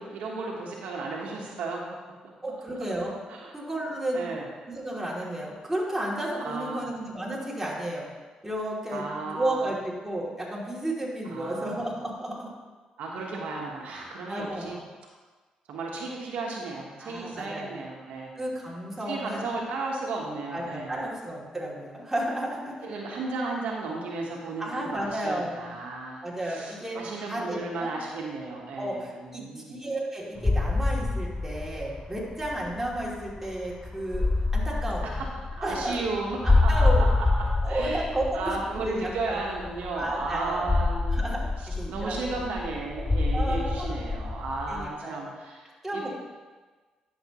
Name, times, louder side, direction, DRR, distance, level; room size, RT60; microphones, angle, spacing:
voice 1, 0.0-1.9 3.3-3.5 4.1-4.5 6.4-6.8 8.9-9.7 11.3-11.8 13.0-14.8 15.7-18.3 19.1-21.0 22.8-29.8 35.0-35.3 35.5-37.3 37.6-38.1 38.3-41.2 41.6-46.1, right 3 dB, 80° right, -2 dB, 1.2 m, -34 dB
voice 2, 2.4-3.2 3.5-4.3 4.7-8.1 8.4-12.5 14.3-14.8 17.0-17.8 18.3-19.6 20.5-22.9 24.6-25.8 26.2-28.0 28.8-34.3 34.5-35.2 35.6-36.0 36.4-37.1 37.6-39.4 39.9-40.8 41.1-41.5 41.7-42.4 43.3-44.0 44.7-45.3 45.8-46.1, right 1 dB, 10° right, -5 dB, 2.7 m, -32 dB
sound 1, 30.4-44.9, left 3 dB, 15° left, 0.4 m, -27 dB
10.5 x 6.7 x 3.0 m, 1.3 s
supercardioid pair, 65°, 2 cm